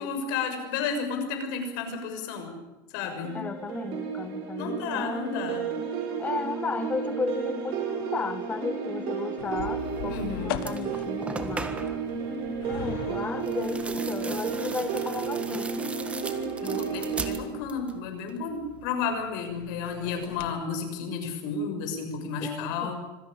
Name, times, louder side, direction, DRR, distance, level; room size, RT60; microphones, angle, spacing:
voice 1, 0.0-2.6 2.9-3.4 4.6-5.7 10.1-10.6 16.6-22.9, left 5 dB, 65° left, 6 dB, 6.4 m, -32 dB
sound 1, 3.2-17.3, right 6 dB, 50° right, 7.7 m, -32 dB
voice 2, 3.3-5.3 6.2-11.8 12.6-15.8 16.6-16.9 22.4-22.9, left 5 dB, 15° left, 11 dB, 0.8 m, -34 dB
sound 2, 9.4-20.6, left 11 dB, 80° left, 1.8 m, -42 dB
sound 3, 10.1-10.3 10.6-12.1 13.4-18.0 18.3-18.9, right 3 dB, 10° right, 1.6 m, -38 dB
25.5 x 17.0 x 8.8 m, 1.1 s
supercardioid pair, 165°, 11 cm